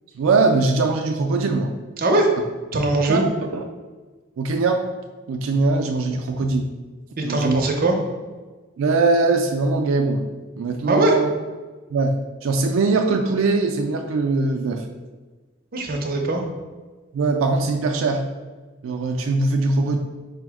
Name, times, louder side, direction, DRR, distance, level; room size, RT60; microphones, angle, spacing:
voice 1, 0.1-1.7 3.1-3.2 3.5-3.6 4.4-4.9 5.3-6.7 7.2-7.6 8.8-11.3 11.9-14.8 17.1-18.2 18.8-20.0, right 3 dB, 85° right, 3 dB, 0.4 m, -21 dB
voice 2, 2.0-2.3 2.7-3.3 7.2-8.0 10.9-11.1 15.7-16.4, right 1 dB, 45° right, 2 dB, 0.6 m, -21 dB
5.1 x 2.0 x 4.6 m, 1.3 s
head